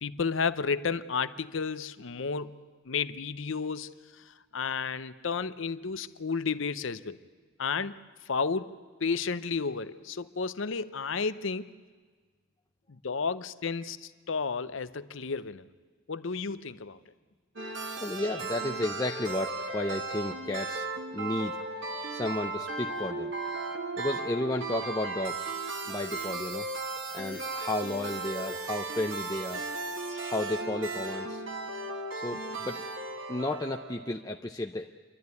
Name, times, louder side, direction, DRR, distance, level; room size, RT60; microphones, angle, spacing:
voice 1, 0.0-2.6 2.9-3.9 4.2-4.3 4.5-7.2 7.6-8.0 8.3-11.7 12.9-15.7 16.1-17.0, left 5 dB, 65° left, 13 dB, 0.7 m, -32 dB
sound 1, 17.6-34.2, right 3 dB, 60° right, 1.9 m, -36 dB
voice 2, 18.0-20.9 21.1-21.6 22.1-23.3 24.0-25.5 25.9-26.7 27.1-29.6 30.3-31.4 32.1-32.8 33.3-34.9, left 1 dB, 15° left, 2 dB, 0.6 m, -33 dB
28.5 x 12.5 x 9.6 m, 1.5 s
head